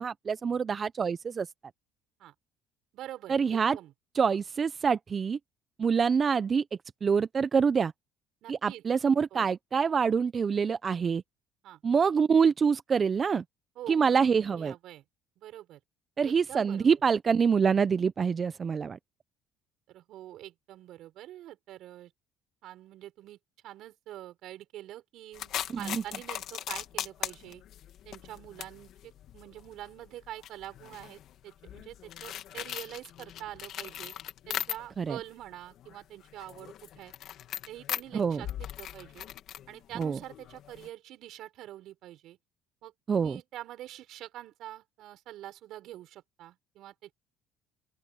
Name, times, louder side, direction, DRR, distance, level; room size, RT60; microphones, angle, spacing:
voice 1, 0.0-1.5 3.3-3.8 4.1-5.4 5.8-6.6 7.0-7.9 8.5-11.2 11.8-13.4 13.9-14.7 16.2-19.0 25.7-26.0 35.0-35.2 38.1-38.4 40.0-40.2 43.1-43.4, right 6 dB, 35° right, 0.5 m, -26 dB
voice 2, 2.9-3.9 8.4-8.8 9.3-9.5 11.6-11.8 13.8-14.3 14.5-15.0 15.4-15.8 16.2-16.9 19.9-22.1 22.6-23.4 23.6-27.6 28.0-34.1 34.5-37.1 37.7-39.3 39.7-42.4 42.8-47.1, right 13 dB, 65° right, 6.3 m, -45 dB
sound 1, 25.3-35.1 35.5-40.9, left 11 dB, 60° left, 2.2 m, -40 dB
open air
supercardioid pair, 100°, 0 cm